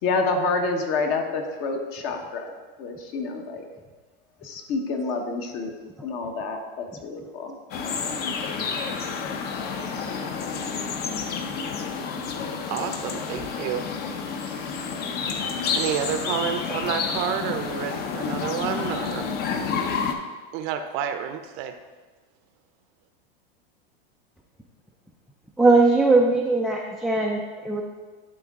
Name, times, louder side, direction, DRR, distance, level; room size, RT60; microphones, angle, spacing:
voice 1, 0.0-2.5 2.8-3.6 4.4-5.7 6.0-7.6, left 3 dB, 50° left, 4 dB, 1.1 m, -28 dB
sound 1, 7.7-20.1, left 5 dB, 35° left, 0.7 m, -29 dB
voice 2, 12.7-13.9 14.5-14.8 15.7-19.3 20.5-21.8, right 8 dB, 50° right, 8 dB, 0.6 m, -29 dB
voice 3, 25.6-27.8, right 3 dB, ahead, -2 dB, 0.3 m, -20 dB
11.5 x 3.8 x 3.6 m, 1.3 s
supercardioid pair, 125°, 30 cm